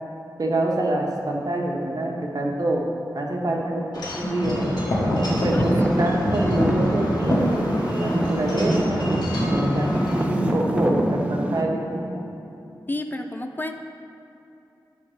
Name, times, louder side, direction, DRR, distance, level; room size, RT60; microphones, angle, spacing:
voice 1, 0.4-2.9 3.1-3.8 4.2-4.7 5.4-9.1 9.4-10.0 10.3-12.0, right 1 dB, 55° right, -1 dB, 1.3 m, -26 dB
Wind chime / Wind, 3.9-10.2, left 1 dB, 75° left, 1.8 m, -26 dB
sound 1, 4.2-12.2, equal, 50° left, 1.8 m, -32 dB
Traffic noise roadway noise / Engine, 5.3-11.6, right 1 dB, 15° right, 0.7 m, -25 dB
voice 2, 12.9-13.7, left 1 dB, 25° left, 6 dB, 0.4 m, -30 dB
11.0 x 3.8 x 6.3 m, 2.8 s
wide cardioid pair, 95°, 8 cm